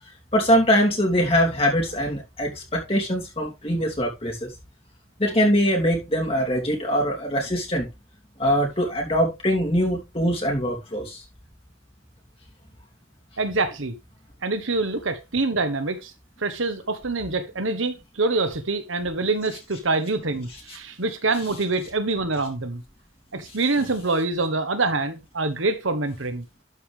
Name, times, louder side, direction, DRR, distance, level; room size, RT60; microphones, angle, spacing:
voice 1, 0.3-4.5 5.2-7.9 8.4-11.2, equal, 30° left, 3.1 m, -22 dB
voice 2, 13.4-13.9 14.4-16.1 16.4-22.8 23.3-26.4, right 3 dB, 75° right, 1.4 m, -25 dB
12.5 x 5.2 x 3.6 m
head